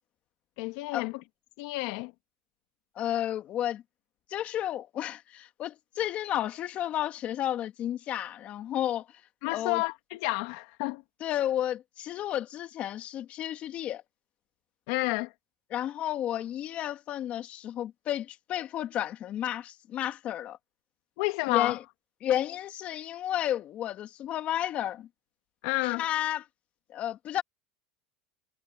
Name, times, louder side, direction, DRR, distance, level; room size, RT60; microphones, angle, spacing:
voice 1, 0.6-1.2 1.6-2.1 9.4-11.0 14.9-15.3 21.2-21.8 25.6-26.0, left 22 dB, 65° left, 1.7 m, -30 dB
voice 2, 3.0-3.8 4.3-9.1 9.5-9.8 11.2-14.0 15.7-20.6 21.5-21.8 22.2-25.1 25.8-26.4 26.9-27.4, left 11 dB, 40° left, 1.9 m, -32 dB
supercardioid pair, 130°, 3 cm